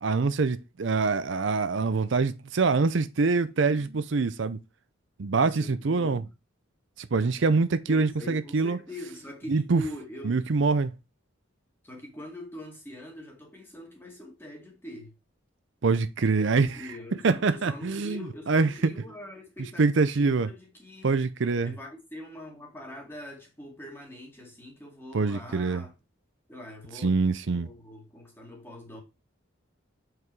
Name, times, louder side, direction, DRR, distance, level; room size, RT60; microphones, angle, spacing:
voice 1, 0.0-4.6 5.2-6.2 7.0-8.8 9.5-9.8 10.2-10.9 15.8-16.8 17.2-18.2 18.5-18.9 19.8-20.5 21.0-21.7 25.1-25.8 27.0-27.7, right 4 dB, 65° right, 0.5 m, -24 dB
voice 2, 5.4-6.3 7.9-10.4 11.8-15.1 16.6-21.1 21.6-25.9 26.5-27.2 27.4-29.0, left 1 dB, 10° left, 2.2 m, -43 dB
7.8 x 4.8 x 4.7 m
head